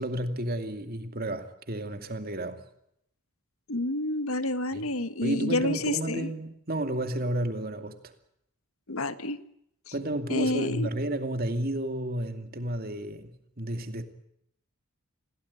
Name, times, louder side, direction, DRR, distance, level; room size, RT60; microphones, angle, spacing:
voice 1, 0.0-2.6 4.7-4.9 5.2-8.1 9.9-14.0, right 1 dB, 45° right, 2.5 m, -32 dB
voice 2, 3.7-6.3 8.9-9.4 10.3-10.9, left 2 dB, 70° left, 1.5 m, -29 dB
28.0 x 17.0 x 8.5 m
head